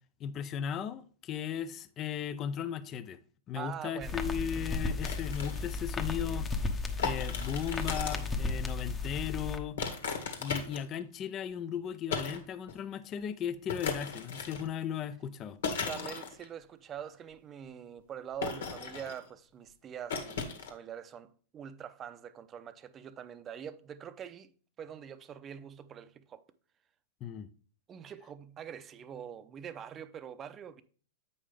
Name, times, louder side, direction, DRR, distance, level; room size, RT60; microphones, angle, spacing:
voice 1, 0.2-3.2 3.5-6.5 7.0-9.8 10.4-15.6 27.2-27.5, left 8 dB, 35° left, 0.6 m, -36 dB
voice 2, 3.5-4.2 15.8-24.5 24.8-26.4 27.9-30.8, right 9 dB, 30° right, 0.7 m, -44 dB
sound 1, 4.0-9.6, left 3 dB, 20° left, 1.0 m, -34 dB
sound 2, 5.0-5.7 7.0-8.3 9.8-11.0 12.1-12.4 12.7-12.8 13.7-14.7 15.6-16.5 18.4-19.3 20.1-20.7, left 5 dB, 75° left, 1.9 m, -36 dB
8.4 x 5.5 x 3.4 m
hypercardioid pair, 110°, 0 cm